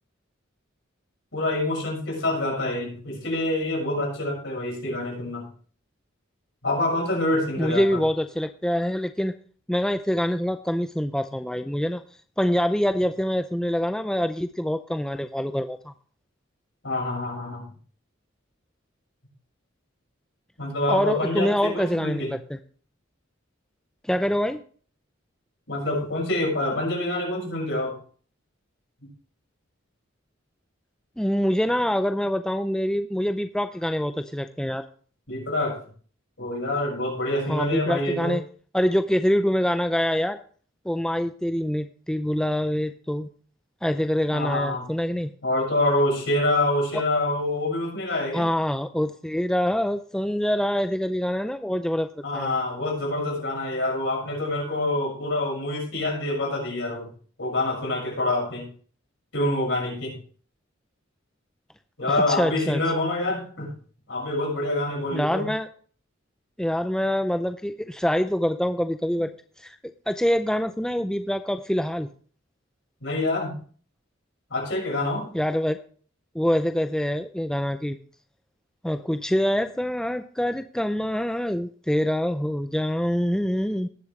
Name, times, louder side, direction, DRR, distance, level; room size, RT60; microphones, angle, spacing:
voice 1, 1.3-5.5 6.6-8.0 16.8-17.7 20.6-22.3 25.7-27.9 35.3-35.8 36.4-38.4 44.3-44.8 45.4-48.5 52.2-57.1 57.4-58.7 59.3-60.1 62.0-63.7 64.1-65.5 73.0-73.6 74.5-75.3, left 1 dB, 65° left, -2 dB, 6.3 m, -26 dB
voice 2, 7.6-9.3 9.7-12.0 12.4-15.9 20.9-22.4 24.0-24.6 31.2-34.8 37.5-38.4 38.7-40.4 40.9-43.3 43.8-45.3 48.3-52.1 52.3-52.5 62.1-62.8 65.1-65.7 66.6-69.3 69.6-69.8 70.1-72.1 75.3-75.8 76.3-78.0 78.8-83.9, equal, 5° left, 8 dB, 0.4 m, -25 dB
18.0 x 7.3 x 3.2 m, 0.44 s
head